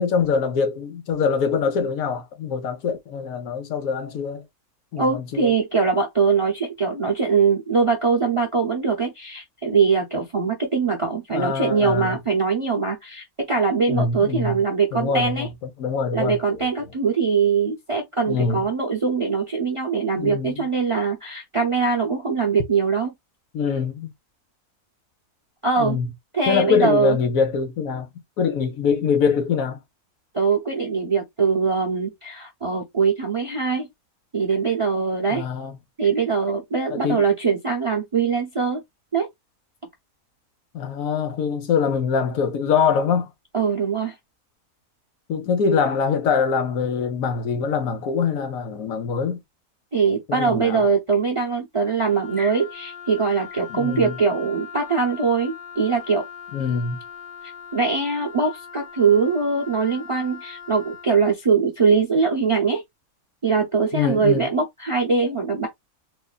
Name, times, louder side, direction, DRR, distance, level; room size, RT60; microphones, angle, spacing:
voice 1, 0.0-4.4 4.9-5.5 11.3-12.2 13.9-14.6 14.9-15.5 15.8-16.7 18.3-18.6 20.1-20.5 23.5-24.1 25.8-26.1 26.5-28.1 28.4-29.8 35.3-35.8 36.9-37.3 40.7-43.3 45.3-49.4 50.3-50.8 53.7-54.2 56.5-57.0 63.9-64.5, left 6 dB, 70° left, 1.2 m, -23 dB
voice 2, 5.0-15.5 16.1-23.1 25.6-26.0 26.3-27.2 30.3-33.9 34.3-35.4 36.0-38.8 39.1-39.3 43.5-44.1 49.9-56.2 57.7-62.8 63.4-65.7, right 5 dB, 30° right, 0.6 m, -22 dB
Wind instrument woodwind instrument, 52.0-61.1, left 8 dB, 40° left, 1.0 m, -40 dB
4.1 x 2.6 x 2.3 m
omnidirectional pair, 1.6 m